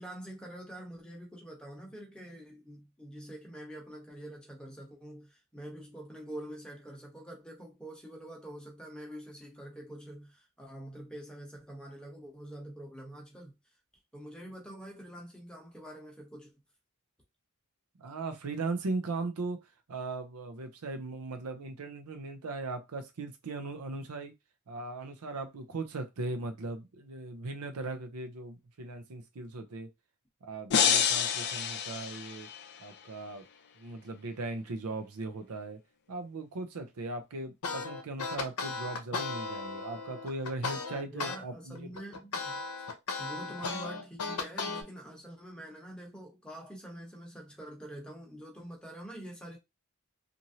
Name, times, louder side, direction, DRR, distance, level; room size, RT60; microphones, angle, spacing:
voice 1, 0.0-13.5 14.1-16.5 41.1-42.9 43.2-49.6, right 1 dB, 5° left, 0.9 m, -46 dB
voice 2, 18.0-19.6 19.9-24.3 24.7-29.9 30.4-32.5 32.8-33.5 33.8-35.8 36.1-41.9, right 3 dB, 85° right, 0.6 m, -38 dB
sound 1, 30.7-32.8, left 7 dB, 50° left, 0.4 m, -28 dB
sound 2, 37.6-41.4 41.8-44.8, left 4 dB, 75° left, 0.7 m, -36 dB
2.9 x 2.6 x 2.7 m
head